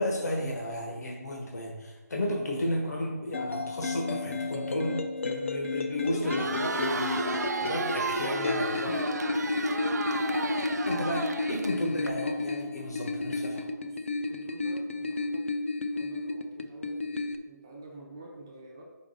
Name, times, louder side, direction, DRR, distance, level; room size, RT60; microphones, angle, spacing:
voice 1, 0.0-9.0 10.9-13.7, left 1 dB, 65° left, -1 dB, 1.4 m, -33 dB
sound 1, 3.3-17.4, left 3 dB, 45° left, 0.5 m, -32 dB
Crowd, 6.1-12.1, right 4 dB, 70° right, 0.5 m, -34 dB
voice 2, 13.8-15.5 15.9-18.8, right 2 dB, 15° right, -1 dB, 0.5 m, -49 dB
5.1 x 4.9 x 5.0 m, 1.2 s
hypercardioid pair, 175°, 10 cm